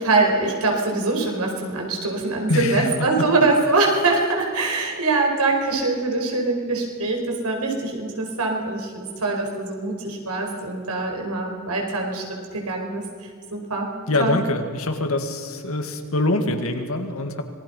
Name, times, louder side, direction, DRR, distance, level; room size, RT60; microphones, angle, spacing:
voice 1, 0.0-12.2 12.5-13.0 13.5-13.9 14.2-14.4, right 3 dB, 90° right, 1 dB, 5.0 m, -23 dB
voice 2, 2.5-3.3 14.1-17.4, left 2 dB, 70° left, 5 dB, 2.3 m, -24 dB
26.0 x 21.0 x 5.6 m, 2.1 s
head